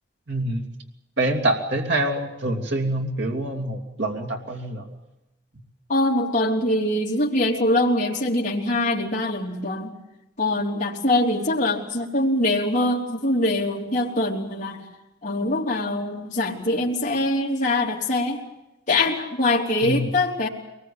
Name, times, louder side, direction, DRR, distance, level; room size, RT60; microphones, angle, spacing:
voice 1, 0.3-0.7 1.2-4.9 19.8-20.1, right 1 dB, 70° right, 2 dB, 2.7 m, -25 dB
voice 2, 5.9-9.9 10.4-14.8 15.2-18.4 18.9-20.5, left 1 dB, 40° left, -3 dB, 3.4 m, -23 dB
23.5 x 21.0 x 8.7 m, 0.94 s
head